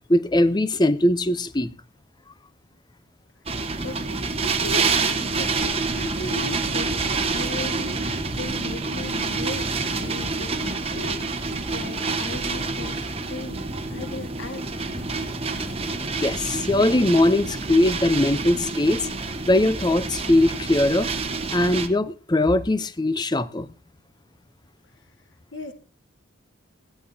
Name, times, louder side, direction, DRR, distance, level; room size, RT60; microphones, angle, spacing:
voice 1, 0.1-1.7 15.8-15.9 16.2-19.1 19.5-21.1 21.5-23.7, left 1 dB, 20° left, 0.6 m, -20 dB
sound 1, 3.5-21.9, right 4 dB, 25° right, 1.1 m, -27 dB
voice 2, 3.8-15.0 25.5-25.7, left 2 dB, 60° left, 1.6 m, -37 dB
17.5 x 12.0 x 2.7 m
head